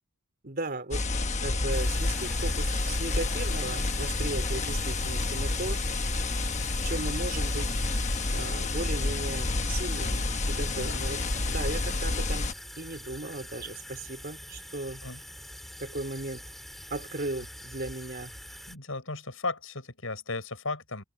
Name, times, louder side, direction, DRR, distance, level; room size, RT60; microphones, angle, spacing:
voice 1, 0.4-1.1 1.4-5.8 6.8-7.8 8.3-12.5 12.8-15.0 15.8-16.5 16.9-18.3, right 2 dB, 50° right, 3.7 m, -36 dB
sound 1, 0.9-12.5, left 2 dB, 35° left, 1.2 m, -29 dB
sound 2, 1.7-18.8, equal, ahead, 2.8 m, -45 dB
voice 2, 18.7-21.0, left 3 dB, 85° left, 6.5 m, -35 dB
head